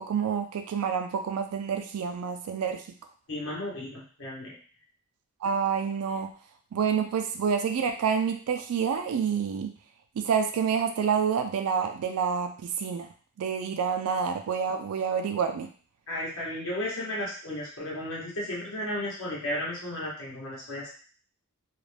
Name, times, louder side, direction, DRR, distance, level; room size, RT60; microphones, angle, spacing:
voice 1, 0.0-2.8 5.4-6.3 6.7-9.7 10.2-13.1 13.4-15.7, right 6 dB, 90° right, 6 dB, 0.3 m, -28 dB
voice 2, 3.3-4.5 16.1-20.9, left 1 dB, 65° left, -5 dB, 1.0 m, -34 dB
2.4 x 2.1 x 3.2 m, 0.42 s
head